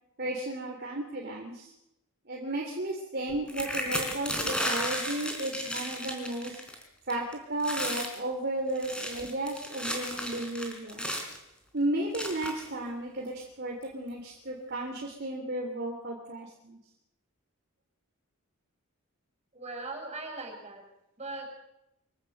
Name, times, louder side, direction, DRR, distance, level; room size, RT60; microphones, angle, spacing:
voice 1, 0.2-1.7 2.3-6.6 7.1-11.1 11.7-16.8, right 1 dB, 45° right, -1 dB, 3.3 m, -34 dB
sound 1, 3.5-6.8 7.1-7.3 7.6-8.2 8.7-11.4 12.1-12.7 13.4-13.5 13.8-14.1, equal, 5° left, 4.1 m, -34 dB
voice 2, 19.5-20.8 21.2-21.5, right 2 dB, 30° right, 2 dB, 7.2 m, -39 dB
25.0 x 17.0 x 7.9 m, 0.84 s
head